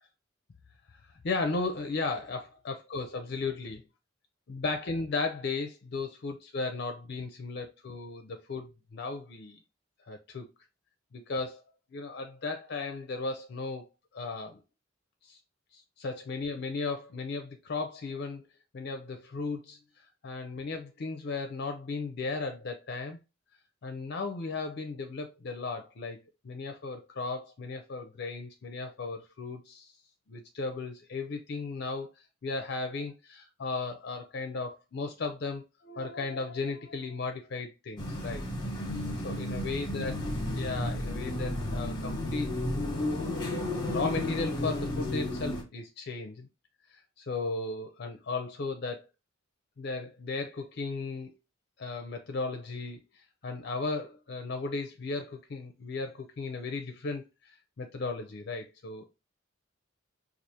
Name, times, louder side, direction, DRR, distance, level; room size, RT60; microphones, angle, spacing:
voice 1, 0.9-3.8 4.5-9.6 10.1-10.5 11.1-11.6 11.9-13.9 14.1-14.6 15.2-15.4 15.7-18.4 18.7-23.2 23.8-26.2 26.4-29.9 30.3-32.1 32.4-38.4 39.2-40.2 40.6-42.5 43.0-43.3 43.8-46.5 46.9-49.1 49.8-51.3 51.8-53.0 53.4-59.0, left 3 dB, 55° left, 0.5 m, -35 dB
sound 1, 38.0-45.6, left 1 dB, 20° left, 1.0 m, -33 dB
4.7 x 2.4 x 2.8 m
head